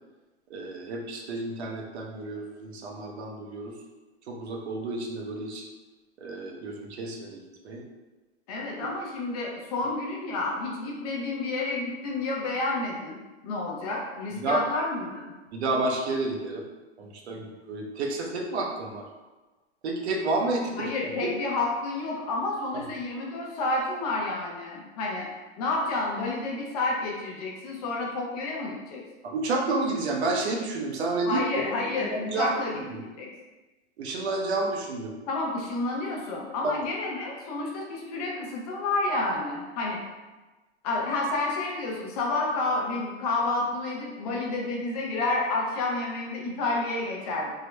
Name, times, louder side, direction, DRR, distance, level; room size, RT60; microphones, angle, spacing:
voice 1, 0.5-3.7 4.3-5.7 6.2-7.8 14.4-14.6 15.5-16.6 17.0-19.0 19.8-21.3 29.2-31.6 32.0-32.6 32.9-33.0 34.0-35.1 36.6-36.7, right 2 dB, 70° right, 1 dB, 0.7 m, -30 dB
voice 2, 8.5-13.2 13.4-15.3 20.8-25.3 25.6-29.0 31.2-33.3 35.3-40.0 40.8-47.6, left 2 dB, 35° left, -2 dB, 0.6 m, -30 dB
3.6 x 2.0 x 3.2 m, 1.2 s
hypercardioid pair, 155°, 34 cm